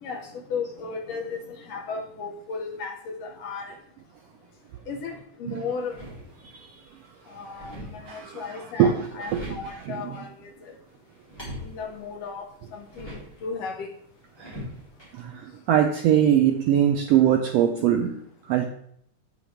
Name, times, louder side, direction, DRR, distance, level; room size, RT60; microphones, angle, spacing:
voice 1, 0.0-3.7 4.9-5.1 5.4-6.0 7.3-10.7 11.6-12.5 12.7-13.9, left 5 dB, 70° left, 2 dB, 1.7 m, -35 dB
sound 1, 5.7-6.7 7.0-8.3 8.9-9.9 11.1-13.5 14.4-15.1, equal, 10° left, 3.0 m, -42 dB
voice 2, 8.1-9.6 9.9-10.2 14.4-14.6 15.1-18.2 18.5-18.6, right 10 dB, 85° right, 4 dB, 1.4 m, -22 dB
8.5 x 7.2 x 3.5 m, 0.69 s
omnidirectional pair, 3.6 m